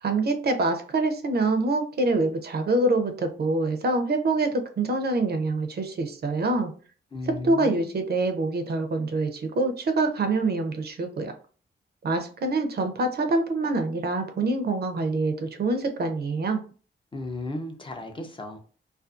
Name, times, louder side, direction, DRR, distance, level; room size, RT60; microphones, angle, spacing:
voice 1, 0.0-6.7 7.3-11.4 12.0-16.6, right 2 dB, 50° right, 6 dB, 0.5 m, -25 dB
voice 2, 7.1-7.9 17.1-18.6, left 2 dB, 25° left, 3 dB, 0.4 m, -35 dB
2.5 x 2.3 x 2.3 m, 0.39 s
cardioid pair, 95°, 21 cm